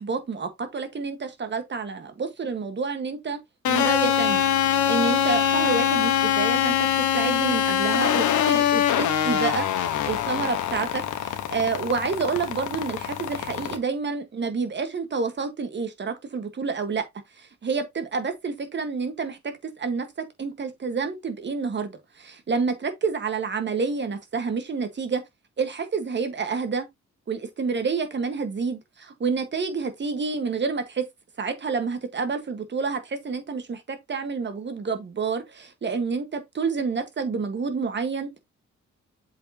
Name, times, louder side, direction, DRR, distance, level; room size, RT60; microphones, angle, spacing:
voice 1, 0.0-3.4 3.7-4.4 4.9-17.0 17.4-20.1 20.4-25.2 25.6-26.9 27.3-31.1 31.4-38.4, right 5 dB, 40° right, 1.5 m, -29 dB
sound 1, 3.6-13.8, left 9 dB, 90° left, 1.3 m, -24 dB
7.6 x 4.9 x 2.9 m
cardioid pair, 110°, 29 cm